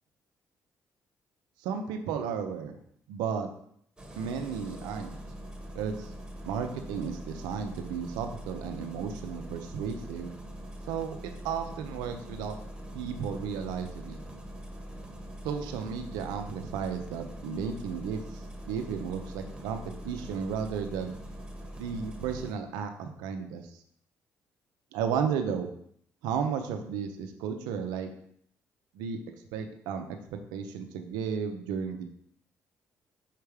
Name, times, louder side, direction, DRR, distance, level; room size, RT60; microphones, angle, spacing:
voice 1, 1.6-2.8 3.1-3.5 4.2-5.1 5.7-6.1 6.4-10.3 10.9-12.6 12.9-14.2 15.4-18.2 18.7-21.1 21.8-23.6 24.9-25.7 26.2-28.1 28.9-29.2 29.5-30.0 30.3-32.0, right 7 dB, 90° right, 6 dB, 0.6 m, -33 dB
Engine starting, 4.0-22.5, equal, 10° right, 1.3 m, -43 dB
5.7 x 3.4 x 4.8 m, 0.68 s
supercardioid pair, 60°, 7 cm